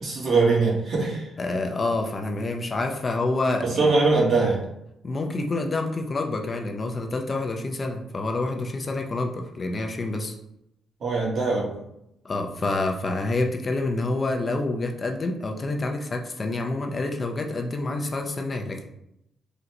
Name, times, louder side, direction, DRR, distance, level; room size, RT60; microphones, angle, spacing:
voice 1, 0.0-1.3 3.6-4.6 11.0-11.7, right 3 dB, 55° right, -4 dB, 1.3 m, -22 dB
voice 2, 1.4-3.9 5.0-10.3 12.2-18.9, left 2 dB, 35° left, 3 dB, 0.4 m, -27 dB
3.7 x 2.1 x 2.9 m, 0.82 s
cardioid pair, 90°, 0 cm